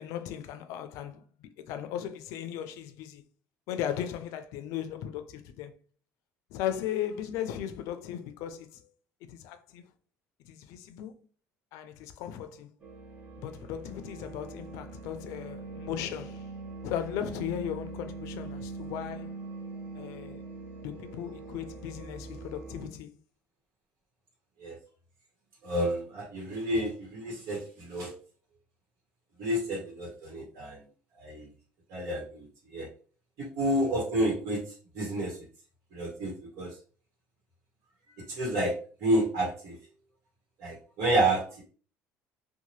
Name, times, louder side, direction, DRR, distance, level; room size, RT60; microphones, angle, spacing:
voice 1, 0.0-3.2 3.7-5.7 6.5-8.9 9.3-9.8 10.5-11.1 11.7-12.7 13.4-16.5 16.8-19.3 19.9-20.4 20.8-23.1, left 10 dB, 80° left, 0.4 m, -37 dB
sound 1, 12.8-22.9, right 3 dB, 30° right, 0.7 m, -42 dB
voice 2, 25.6-28.1 29.4-30.8 31.2-31.5 31.9-32.9 33.4-34.6 34.9-35.4 35.9-36.7 38.3-38.7 39.0-39.8 40.6-41.6, right 1 dB, 70° right, 1.1 m, -30 dB
2.8 x 2.2 x 3.1 m
cardioid pair, 110°, 5 cm